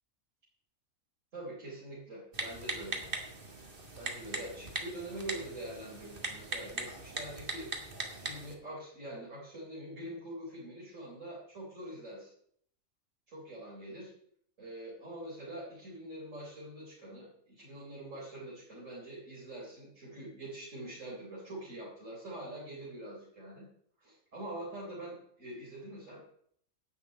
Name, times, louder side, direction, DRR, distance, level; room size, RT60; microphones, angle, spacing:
voice 1, 1.3-3.0 4.0-12.3 13.3-14.1 14.6-23.7 24.0-26.2, right 1 dB, 65° right, -6 dB, 4.2 m, -44 dB
Typing, 2.3-8.5, right 2 dB, 40° right, 2.0 m, -40 dB
11.5 x 6.4 x 8.6 m, 0.66 s
omnidirectional pair, 1.4 m